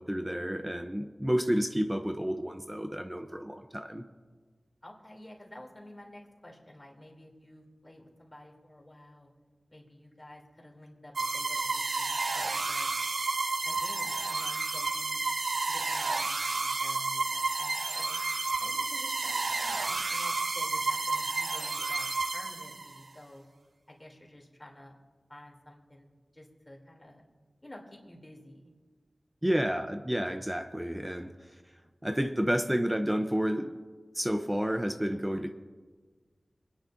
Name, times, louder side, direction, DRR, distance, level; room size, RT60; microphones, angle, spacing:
voice 1, 0.0-4.0 29.4-31.3 32.0-33.8 34.1-35.5, equal, 10° right, 7 dB, 0.6 m, -30 dB
voice 2, 4.8-9.3 9.7-12.9 13.6-15.2 15.6-18.2 18.6-23.4 23.9-24.9 25.3-26.1 26.3-27.2 27.6-28.7, left 1 dB, 25° left, 0 dB, 2.8 m, -51 dB
sound 1, 11.1-23.0, right 3 dB, 75° right, 0.5 m, -31 dB
27.0 x 10.0 x 2.6 m, 1.5 s
wide cardioid pair, 60°, 0 cm